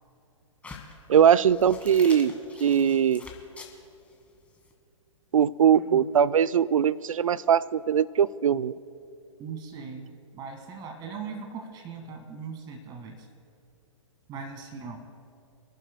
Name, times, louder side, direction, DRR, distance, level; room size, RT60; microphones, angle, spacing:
sound 1, 0.6-4.7, left 4 dB, 10° left, 1.6 m, -46 dB
voice 1, 1.1-2.3 2.6-3.2 5.3-8.7, right 8 dB, 75° right, 18 dB, 0.4 m, -21 dB
voice 2, 5.7-6.0 9.4-13.3 14.3-15.1, right 5 dB, 25° right, 4 dB, 1.8 m, -40 dB
28.5 x 11.0 x 2.2 m, 2.6 s
hypercardioid pair, 125°, 17 cm